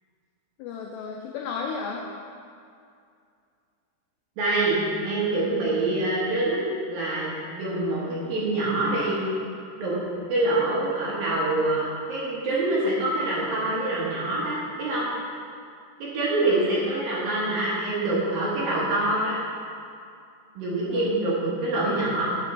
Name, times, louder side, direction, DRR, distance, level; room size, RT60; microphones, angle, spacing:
voice 1, 0.6-2.1 16.4-16.8 20.9-21.4, left 5 dB, 85° left, 0 dB, 2.4 m, -34 dB
voice 2, 4.4-6.6 6.9-9.2 9.8-9.9 10.3-15.1 16.0-19.4 20.6-22.2, right 2 dB, 65° right, -7 dB, 2.7 m, -25 dB
9.1 x 8.0 x 4.6 m, 2.4 s
omnidirectional pair, 5.6 m